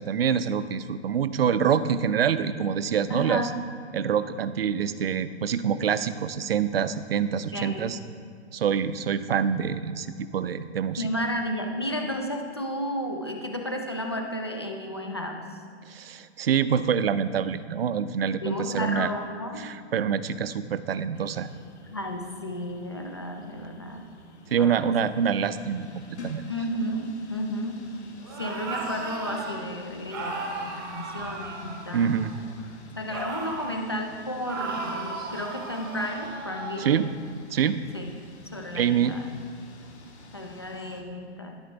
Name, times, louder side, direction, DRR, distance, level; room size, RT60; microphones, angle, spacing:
voice 1, 0.0-3.5 3.9-8.0 8.5-11.0 15.9-19.1 19.6-21.5 24.5-26.5 31.9-32.4 36.8-37.1 37.5-37.8 38.7-39.2, right 7 dB, 60° right, 14 dB, 0.5 m, -26 dB
voice 2, 3.1-3.6 7.5-7.9 11.0-15.4 18.4-19.7 21.9-24.0 24.6-25.0 26.5-27.8 28.4-32.2 33.0-37.0 37.9-38.1 38.5-39.3 40.3-41.6, equal, 25° left, 3 dB, 0.4 m, -32 dB
sound 1, 21.1-41.0, left 3 dB, 70° left, 1.5 m, -50 dB
sound 2, 28.2-29.6 30.1-32.4 33.1-33.8 34.5-37.0, right 3 dB, 20° right, 0.8 m, -36 dB
10.5 x 7.9 x 3.9 m, 2.4 s
hypercardioid pair, 180°, 35 cm